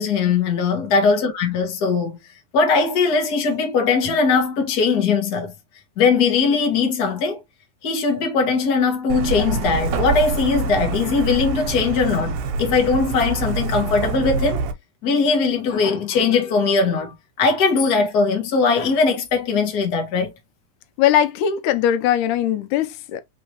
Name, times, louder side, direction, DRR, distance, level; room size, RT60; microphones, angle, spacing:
voice 1, 0.0-2.2 2.5-5.5 6.0-7.4 7.8-14.6 15.0-20.3, left 4 dB, 45° left, 1.3 m, -20 dB
Truck, 9.1-14.7, right 4 dB, 75° right, 1.9 m, -25 dB
voice 2, 21.0-23.2, left 10 dB, 80° left, 2.0 m, -20 dB
4.7 x 3.7 x 2.8 m
omnidirectional pair, 3.6 m